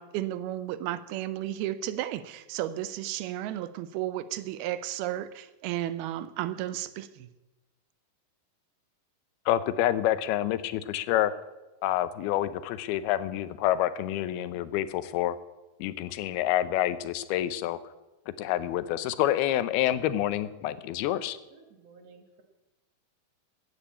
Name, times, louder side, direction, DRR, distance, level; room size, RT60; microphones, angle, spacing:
voice 1, 0.0-7.3, right 13 dB, 85° right, 2.6 m, -33 dB
voice 2, 9.5-11.3 11.8-15.4 15.8-17.8 18.4-21.4, left 13 dB, 85° left, 2.7 m, -27 dB
voice 3, 21.5-22.4, right 5 dB, 60° right, 1.9 m, -55 dB
14.5 x 8.9 x 8.4 m
omnidirectional pair, 4.4 m